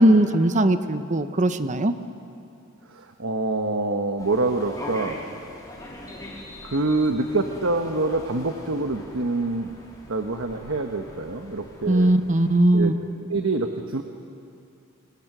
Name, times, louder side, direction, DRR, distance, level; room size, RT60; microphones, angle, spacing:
voice 1, 0.0-1.9 11.9-12.9, right 1 dB, 35° right, 10 dB, 1.0 m, -19 dB
voice 2, 2.9-5.2 6.6-12.1 12.7-12.9 13.3-14.0, right 2 dB, 65° right, 5 dB, 1.2 m, -26 dB
sound 1, 4.2-12.6, left 1 dB, 20° left, 3.8 m, -42 dB
28.5 x 24.0 x 6.2 m, 2.6 s
head